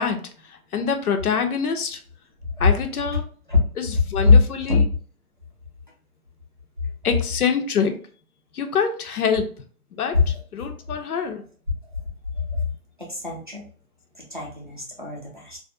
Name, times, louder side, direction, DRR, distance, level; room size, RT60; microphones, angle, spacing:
voice 1, 0.0-2.0 2.6-3.2 3.8-4.8 7.0-8.0 8.5-9.5 9.9-11.4, left 6 dB, 75° left, 7 dB, 0.6 m, -25 dB
voice 2, 13.0-13.6 14.1-15.6, left 4 dB, 35° right, -3 dB, 0.4 m, -22 dB
2.4 x 2.1 x 2.5 m, 0.43 s
hypercardioid pair, 175°, 45 cm